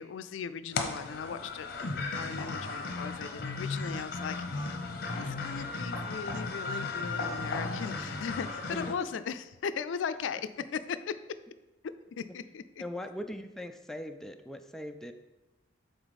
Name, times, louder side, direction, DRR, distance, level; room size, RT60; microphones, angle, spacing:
voice 1, 0.0-4.8 5.1-10.4 10.7-11.1 12.2-12.8, left 6 dB, 85° left, 12 dB, 0.4 m, -38 dB
sound 1, 0.7-8.9, left 3 dB, 55° left, 0.8 m, -35 dB
voice 2, 12.8-15.1, left 1 dB, ahead, 6 dB, 0.3 m, -40 dB
7.9 x 3.9 x 4.1 m, 1.0 s
head